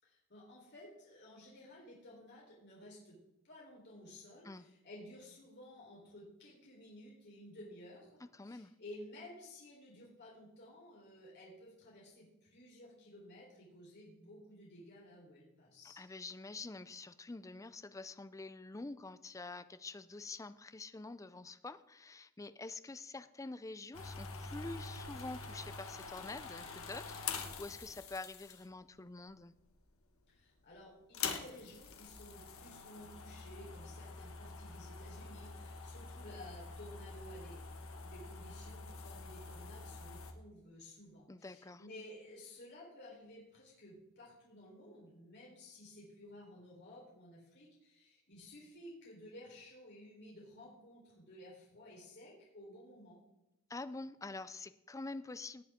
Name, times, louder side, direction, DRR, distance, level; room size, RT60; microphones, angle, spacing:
voice 1, 0.0-3.2 3.4-16.0 30.3-53.2, left 1 dB, 55° left, -4 dB, 3.9 m, -54 dB
voice 2, 8.3-8.7 16.0-29.5 41.3-41.8 53.7-55.6, left 3 dB, 15° left, 13 dB, 0.4 m, -47 dB
sound 1, 23.9-28.8 29.6-30.1 30.3-30.4 31.0-40.3, left 5 dB, 85° left, 1.3 m, -46 dB
18.5 x 8.3 x 3.6 m, 0.87 s
head